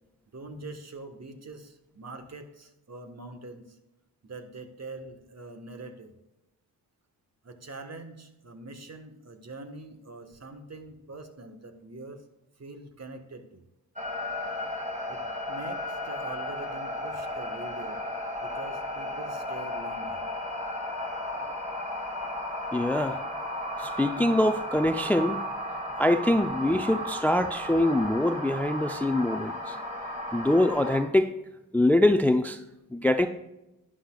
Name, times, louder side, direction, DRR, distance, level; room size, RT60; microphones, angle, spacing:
voice 1, 0.3-3.8 4.2-6.1 7.4-12.2 12.6-13.6 15.1-15.2 15.5-18.0 18.4-20.3, right 3 dB, 40° right, 7 dB, 1.4 m, -44 dB
sound 1, 14.0-31.0, left 1 dB, 20° right, 2.1 m, -34 dB
voice 2, 22.7-23.2 23.8-25.4 26.0-29.8 30.3-31.3 31.7-32.6 32.9-33.3, left 1 dB, 5° left, 9 dB, 0.5 m, -24 dB
11.0 x 9.9 x 2.3 m, 0.94 s
supercardioid pair, 50°, 39 cm